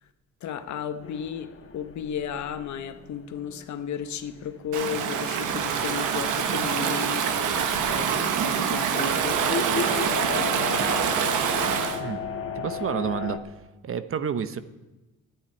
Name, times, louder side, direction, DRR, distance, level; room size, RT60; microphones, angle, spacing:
voice 1, 0.4-1.5 1.7-11.1, left 8 dB, 70° left, 1.0 m, -34 dB
sound 1, 1.0-4.7 5.1-5.2 5.6-7.3 7.8-7.9 9.3-13.4, left 5 dB, 45° left, 1.4 m, -35 dB
Stream / Ocean, 4.7-12.0, right 7 dB, 85° right, 1.2 m, -25 dB
voice 2, 12.5-13.5 13.8-14.6, right 7 dB, 45° right, 0.8 m, -29 dB
10.5 x 8.9 x 9.6 m
cardioid pair, 90°, 30 cm